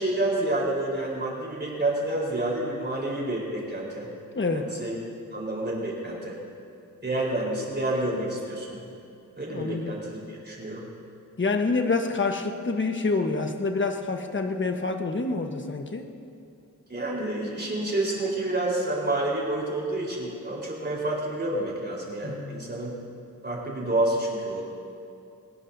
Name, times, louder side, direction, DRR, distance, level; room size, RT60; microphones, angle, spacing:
voice 1, 0.0-4.1 4.5-5.0 5.3-6.4 7.0-8.8 9.4-10.9 16.9-23.0 23.4-24.6, right 1 dB, 30° right, -4 dB, 4.2 m, -29 dB
voice 2, 4.4-4.7 9.5-9.9 11.4-16.1 22.2-22.7, left 3 dB, 35° left, 5 dB, 1.2 m, -27 dB
23.0 x 20.0 x 2.7 m, 2.7 s
wide cardioid pair, 145°, 33 cm